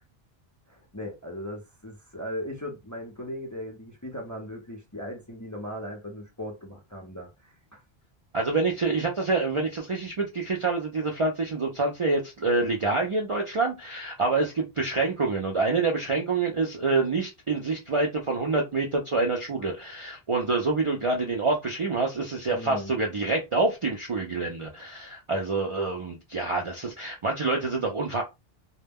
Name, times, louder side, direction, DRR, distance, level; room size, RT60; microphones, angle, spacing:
voice 1, 0.7-7.8 22.5-22.9, left 1 dB, 25° left, 0.5 m, -38 dB
voice 2, 8.3-28.2, right 3 dB, 45° right, 0.4 m, -27 dB
2.1 x 2.1 x 3.3 m
omnidirectional pair, 1.0 m